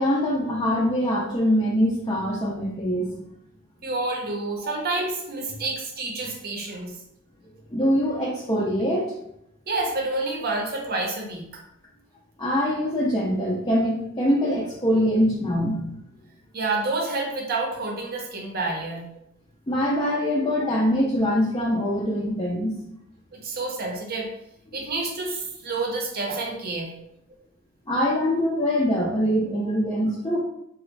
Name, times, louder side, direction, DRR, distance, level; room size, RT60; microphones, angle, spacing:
voice 1, 0.0-3.1 4.6-4.7 7.7-9.1 12.4-15.8 19.7-22.8 27.9-30.4, equal, 20° left, -4 dB, 0.4 m, -23 dB
voice 2, 3.8-6.9 9.7-11.6 16.5-19.0 23.3-24.3 24.7-26.9, right 3 dB, 50° right, 1 dB, 0.7 m, -28 dB
3.0 x 2.5 x 3.1 m, 0.79 s
head